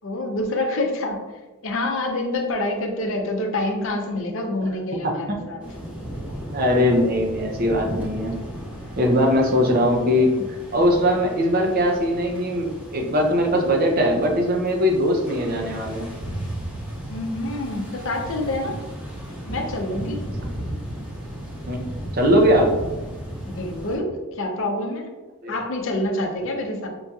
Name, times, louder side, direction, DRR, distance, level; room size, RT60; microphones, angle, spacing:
voice 1, 0.0-1.2 1.6-5.6 17.1-18.8 19.5-20.2 23.5-25.1 25.5-26.9, left 1 dB, 60° left, 2 dB, 0.6 m, -27 dB
voice 2, 5.0-5.4 6.5-8.4 9.0-16.1 20.7-20.8 21.7-22.8 25.4-25.5 26.4-26.5, equal, 40° right, 2 dB, 0.5 m, -21 dB
sound 1, 5.6-24.0, right 1 dB, 5° right, 0.9 m, -35 dB
5.3 x 2.7 x 2.3 m, 1.2 s
head